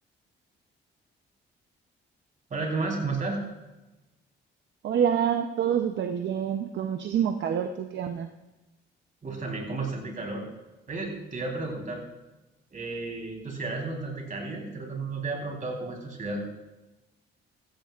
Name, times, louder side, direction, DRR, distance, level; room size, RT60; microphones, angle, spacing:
voice 1, 2.5-3.4 9.2-10.5 10.9-12.0 12.7-16.4, right 3 dB, 40° right, 1 dB, 3.7 m, -32 dB
voice 2, 4.8-8.3, right 8 dB, 65° right, 7 dB, 0.7 m, -27 dB
16.0 x 14.0 x 2.5 m, 1.1 s
cardioid pair, 90°, 20 cm